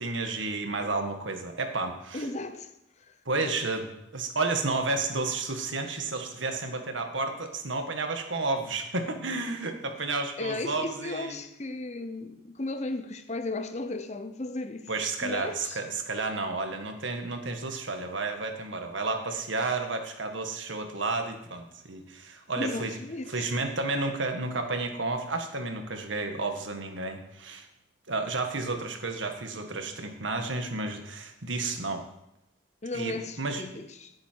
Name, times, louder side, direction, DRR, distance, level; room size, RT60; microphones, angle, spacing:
voice 1, 0.0-2.3 3.3-11.4 14.9-23.0 23.3-27.7 28.1-32.0 32.9-33.6, right 3 dB, 80° right, 1.7 m, -31 dB
voice 2, 2.1-2.7 3.0-3.6 10.4-14.9 15.2-15.8 22.6-23.5 32.8-34.1, left 2 dB, 35° left, 0.8 m, -35 dB
18.0 x 8.5 x 4.7 m
head